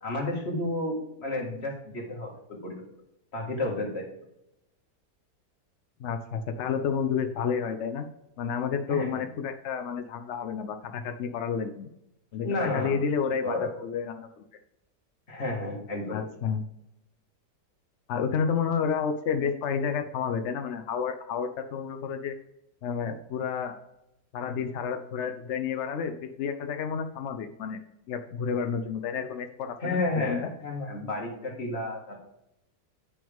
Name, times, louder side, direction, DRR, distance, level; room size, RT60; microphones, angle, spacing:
voice 1, 0.0-2.8 3.3-4.1 8.9-9.2 12.4-13.0 13.4-13.7 15.3-16.2 29.8-32.2, left 2 dB, 40° left, -1 dB, 2.0 m, -31 dB
voice 2, 6.0-8.0 8.4-11.9 12.3-14.4 16.1-16.6 18.1-22.4 22.8-23.8 24.3-27.8 28.1-30.5, left 6 dB, 65° left, 6 dB, 0.7 m, -30 dB
9.5 x 6.1 x 3.5 m, 0.86 s
omnidirectional pair, 1.8 m